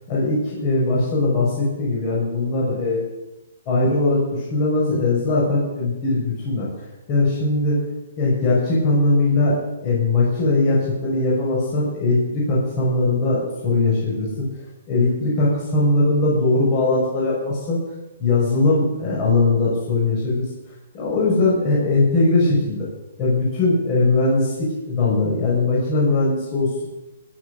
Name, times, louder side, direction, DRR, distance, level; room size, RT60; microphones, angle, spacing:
voice 1, 0.1-3.0 3.7-6.7 7.1-7.8 8.2-9.6 9.8-14.5 14.9-17.8 18.2-20.4 20.9-22.9 23.2-26.9, left 2 dB, 30° left, -6 dB, 5.7 m, -20 dB
19.5 x 7.6 x 6.6 m, 1.0 s
hypercardioid pair, 155°, 0 cm